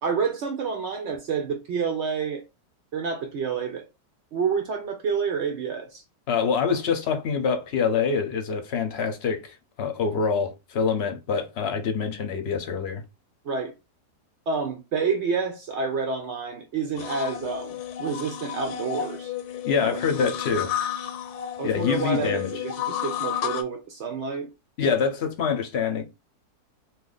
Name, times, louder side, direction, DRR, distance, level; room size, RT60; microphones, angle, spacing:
voice 1, 0.0-2.4 2.9-3.9 4.3-6.0 13.4-13.7 14.5-19.3 19.8-20.3 21.6-24.5, right 5 dB, 70° right, 0.6 m, -29 dB
voice 2, 6.3-13.0 19.6-20.7 21.6-22.5 24.8-26.0, left 6 dB, 55° left, 0.7 m, -25 dB
sound 1, 17.0-23.6, left 10 dB, 85° left, 1.2 m, -32 dB
2.8 x 2.5 x 3.8 m
omnidirectional pair, 1.6 m